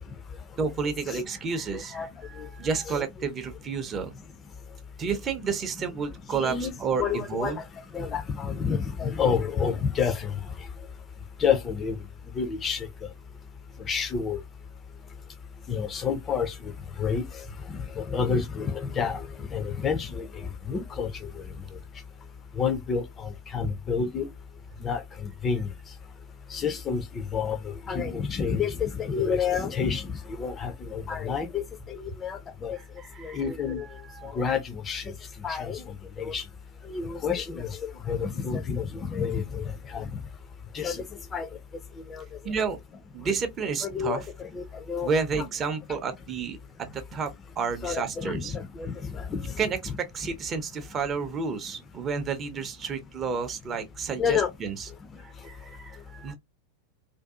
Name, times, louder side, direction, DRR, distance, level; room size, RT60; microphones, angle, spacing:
voice 1, 0.6-4.1 5.0-7.6 24.7-24.8 32.7-33.4 34.0-34.3 42.4-42.8 43.1-44.2 45.0-47.3 47.6-48.6 49.6-54.9 55.2-56.3, right 5 dB, 25° right, 0.6 m, -31 dB
voice 2, 1.7-2.1 2.4-2.5 2.9-3.1 6.3-6.7 7.0-7.6 7.9-10.3 11.4-12.0 12.3-12.9 13.9-14.4 15.7-16.7 17.0-21.4 22.6-24.3 24.8-25.0 25.4-25.7 26.5-32.8 33.2-33.9 34.2-35.1 35.4-35.8 36.2-36.4 36.9-40.1 40.7-41.0 41.3-41.5 42.1-42.2 43.8-45.1 45.4-45.5 47.8-49.5 49.9-50.0 54.2-54.5, left 6 dB, 25° left, 0.4 m, -29 dB
2.5 x 2.3 x 2.3 m
figure-of-eight pair, 90°, 0 cm